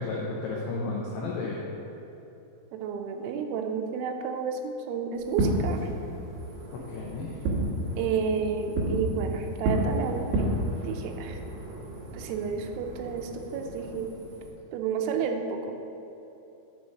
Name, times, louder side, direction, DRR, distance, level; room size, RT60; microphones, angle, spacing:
voice 1, 0.0-1.6 6.9-7.4, left 3 dB, 85° left, -4 dB, 2.4 m, -32 dB
voice 2, 2.7-5.9 8.0-10.5 10.8-11.4 12.1-14.1 14.7-15.8, right 6 dB, 85° right, 5 dB, 3.4 m, -31 dB
Fireworks, 5.2-14.5, right 1 dB, 70° right, 3.3 m, -32 dB
7.4 x 5.5 x 6.3 m, 2.9 s
omnidirectional pair, 6.0 m